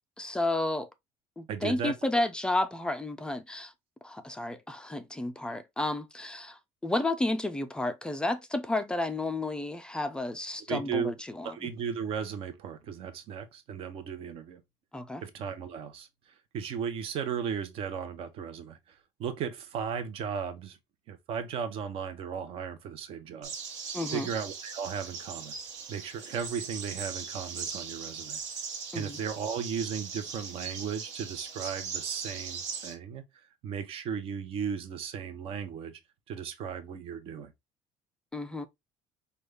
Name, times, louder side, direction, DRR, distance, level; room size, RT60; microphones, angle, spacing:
voice 1, 0.2-0.9 1.4-3.7 4.0-11.7 14.9-15.2 23.9-24.3 28.9-29.2 38.3-38.7, left 2 dB, 5° left, 0.3 m, -32 dB
voice 2, 1.5-2.2 10.7-11.1 11.4-14.6 15.2-20.8 21.1-23.5 24.1-25.5 25.9-28.4 28.9-36.0 36.3-37.5, right 7 dB, 50° right, 0.8 m, -36 dB
sound 1, 23.4-33.0, right 6 dB, 70° right, 1.2 m, -39 dB
5.1 x 2.3 x 3.3 m
cardioid pair, 170°, 12 cm